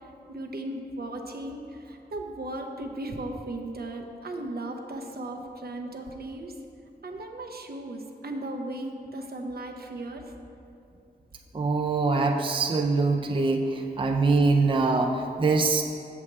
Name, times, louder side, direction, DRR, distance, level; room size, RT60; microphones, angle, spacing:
voice 1, 0.3-6.5 7.0-10.3, right 1 dB, 65° right, 2 dB, 0.7 m, -36 dB
voice 2, 11.5-15.8, right 3 dB, 30° right, 2 dB, 0.4 m, -23 dB
7.2 x 7.1 x 3.2 m, 2.6 s
wide cardioid pair, 65°, 17 cm